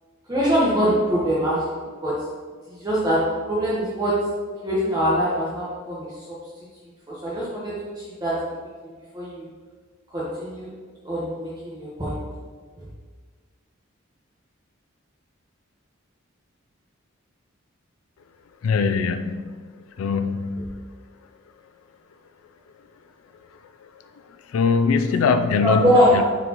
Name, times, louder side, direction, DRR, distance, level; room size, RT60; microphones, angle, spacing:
voice 1, 0.3-2.2 2.8-3.2 3.5-4.1 4.6-6.4 7.1-8.5 9.1-9.5 10.1-10.7 11.0-12.2 25.6-26.2, equal, 20° right, -8 dB, 1.1 m, -23 dB
voice 2, 18.6-19.6 20.0-20.8 24.5-26.2, left 5 dB, 85° left, 9 dB, 0.4 m, -22 dB
9.6 x 4.1 x 2.9 m, 1.5 s
head